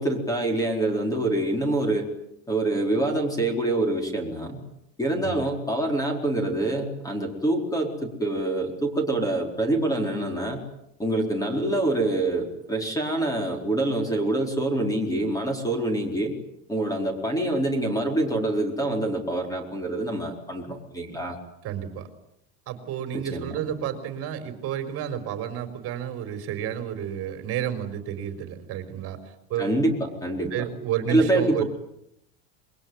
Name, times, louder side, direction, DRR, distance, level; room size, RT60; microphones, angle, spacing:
voice 1, 0.0-2.1 2.5-4.6 5.0-10.6 11.0-16.3 16.7-21.4 23.1-23.6 29.6-30.5 31.1-31.6, right 1 dB, 10° left, 4 dB, 4.3 m, -26 dB
voice 2, 21.6-22.1 22.7-29.2 29.5-29.7 30.5-31.6, right 10 dB, 35° right, 9 dB, 4.5 m, -31 dB
27.0 x 23.0 x 9.5 m, 0.78 s
supercardioid pair, 165°, 42 cm